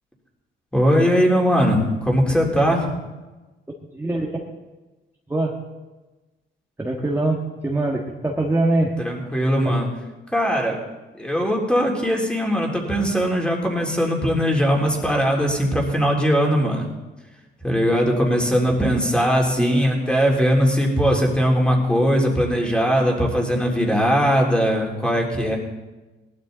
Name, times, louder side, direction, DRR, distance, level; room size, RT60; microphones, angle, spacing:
voice 1, 0.7-2.9 9.0-9.9 10.3-10.8 11.2-16.9 17.6-25.6, equal, 5° left, -1 dB, 3.5 m, -20 dB
voice 2, 3.9-4.4 5.3-5.6 6.8-8.9 9.6-9.7 19.6-19.8, right 2 dB, 10° right, -1 dB, 1.6 m, -23 dB
18.0 x 12.0 x 4.0 m, 1.2 s
cardioid pair, 90°, 20 cm